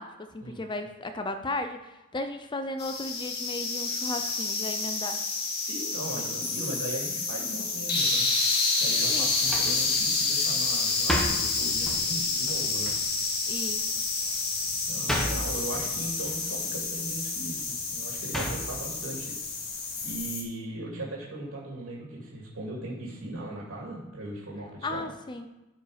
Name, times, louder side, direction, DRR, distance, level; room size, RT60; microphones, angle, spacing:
voice 1, 0.0-5.2 9.1-9.3 13.5-13.9 24.8-25.5, left 2 dB, 25° left, 8 dB, 0.5 m, -35 dB
sound 1, 2.8-20.4, left 3 dB, 55° left, 1.8 m, -29 dB
voice 2, 5.6-8.3 8.8-12.9 14.9-25.1, right 1 dB, 90° right, -4 dB, 2.6 m, -38 dB
sound 2, 9.1-20.3, equal, ahead, 1.3 m, -37 dB
12.5 x 4.8 x 5.1 m, 1.0 s
head